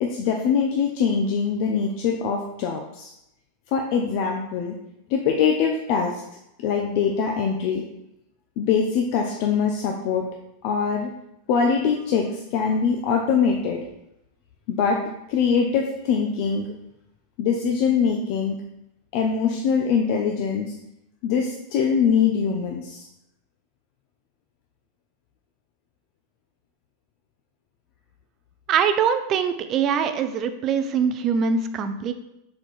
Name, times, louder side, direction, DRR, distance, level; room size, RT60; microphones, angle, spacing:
voice 1, 0.0-3.1 3.7-4.7 5.1-6.2 6.6-7.8 8.6-10.2 10.6-11.1 11.5-13.8 14.7-15.0 15.3-16.7 17.4-18.6 19.1-20.7 21.2-23.1, left 6 dB, 45° left, 2 dB, 0.6 m, -23 dB
voice 2, 28.7-32.1, right 6 dB, 25° right, 9 dB, 0.4 m, -23 dB
6.3 x 4.2 x 4.5 m, 0.84 s
supercardioid pair, 170°, 0 cm